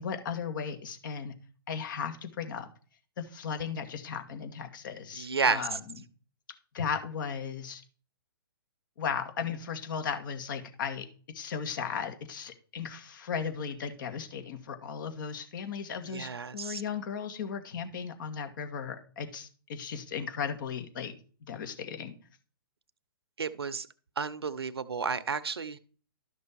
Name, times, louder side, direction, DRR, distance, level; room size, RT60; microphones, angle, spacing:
voice 1, 0.0-1.3 1.7-2.7 3.2-5.8 6.7-7.8 9.0-11.1 11.3-21.1 21.5-22.2, left 6 dB, 55° left, 7 dB, 2.2 m, -36 dB
voice 2, 5.1-5.8 16.0-16.8 23.4-23.9 24.2-25.8, right 5 dB, 90° right, 13 dB, 0.8 m, -31 dB
12.0 x 6.1 x 4.6 m, 0.39 s
hypercardioid pair, 130°, 13 cm